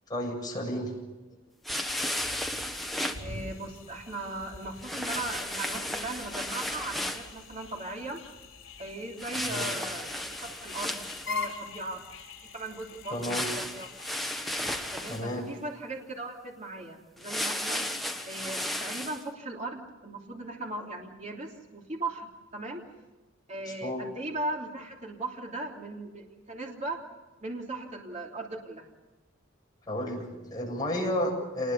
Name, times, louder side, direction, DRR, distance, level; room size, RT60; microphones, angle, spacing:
voice 1, 0.1-0.9 9.5-9.7 13.1-13.5 15.1-15.4 23.8-24.0 29.9-31.7, left 1 dB, 20° left, -2 dB, 7.8 m, -31 dB
sound 1, 1.6-3.2 4.8-7.3 9.2-11.5 13.2-15.3 17.2-19.2, left 1 dB, ahead, 1.4 m, -34 dB
sound 2, 1.7-15.2, left 4 dB, 75° left, 5.0 m, -44 dB
voice 2, 3.2-8.2 8.8-12.0 12.4-13.9 14.9-17.9 18.3-22.8 23.5-27.0 27.4-28.9, right 2 dB, 35° right, 0 dB, 3.1 m, -38 dB
27.5 x 20.5 x 7.0 m, 1.1 s
head